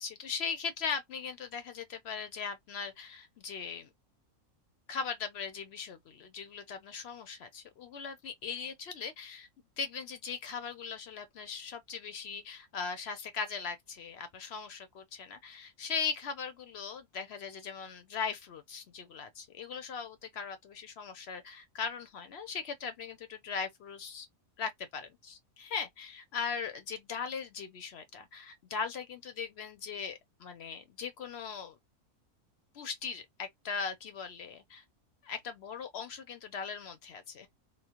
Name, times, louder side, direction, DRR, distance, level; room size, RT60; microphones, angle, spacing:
voice 1, 0.0-3.9 4.9-9.5 9.8-24.3 24.6-31.8 32.7-34.8 35.2-37.5, left 6 dB, 65° left, 0.7 m, -39 dB
3.0 x 2.0 x 2.8 m
omnidirectional pair, 1.5 m